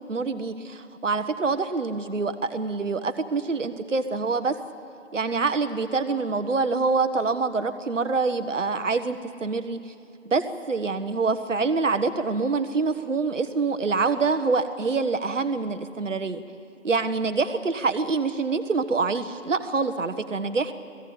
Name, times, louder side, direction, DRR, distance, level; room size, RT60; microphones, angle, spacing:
voice 1, 0.0-4.6 5.1-9.8 10.3-16.4 16.8-20.7, right 4 dB, 65° right, 9 dB, 1.3 m, -26 dB
26.5 x 17.0 x 8.8 m, 2.6 s
figure-of-eight pair, 160°, 40 cm